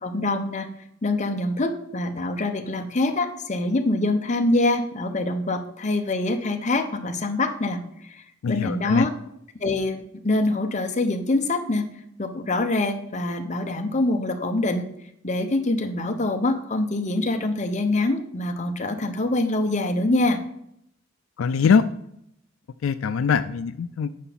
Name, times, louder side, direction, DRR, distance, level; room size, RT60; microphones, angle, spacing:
voice 1, 0.0-0.7 1.0-9.1 9.6-11.9 12.2-14.9 15.2-20.4, left 2 dB, 35° left, 6 dB, 0.8 m, -25 dB
voice 2, 8.4-9.1 21.4-21.8 22.8-24.1, left 6 dB, 80° left, 12 dB, 0.4 m, -22 dB
9.6 x 5.6 x 4.1 m, 0.74 s
head